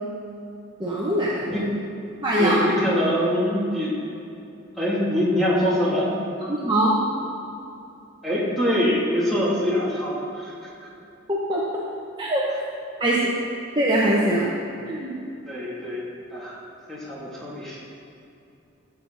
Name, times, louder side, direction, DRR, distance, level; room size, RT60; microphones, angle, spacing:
voice 1, 0.8-1.6 2.2-2.5 6.5-6.9 11.3-11.8 12.2-12.4 13.0-13.4 13.7-14.5 14.9-15.1, right 1 dB, 25° right, -6 dB, 1.1 m, -22 dB
voice 2, 2.4-4.0 4.7-6.1 8.2-10.7 15.4-16.0 16.3-16.6 16.9-17.8, equal, ahead, -8 dB, 2.7 m, -24 dB
15.0 x 8.1 x 4.1 m, 2.6 s
head